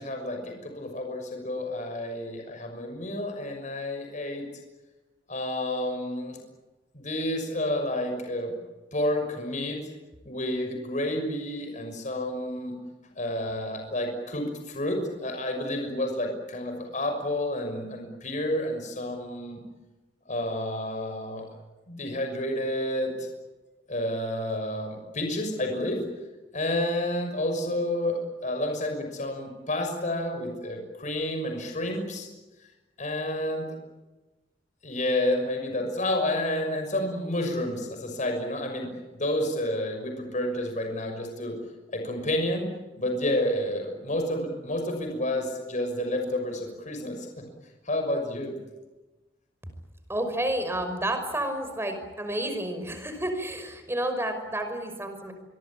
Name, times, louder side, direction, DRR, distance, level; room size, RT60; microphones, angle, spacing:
voice 1, 0.0-4.4 5.3-6.4 6.9-8.6 8.9-9.8 10.2-12.8 13.2-19.6 20.3-21.4 21.9-23.3 23.9-26.0 26.5-32.3 33.0-33.6 34.8-41.6 41.9-42.7 43.0-47.3 47.8-48.6, left 1 dB, 45° left, 4 dB, 6.3 m, -30 dB
voice 2, 50.1-55.3, right 1 dB, 15° right, 7 dB, 5.6 m, -30 dB
26.5 x 23.0 x 8.8 m, 1.1 s
head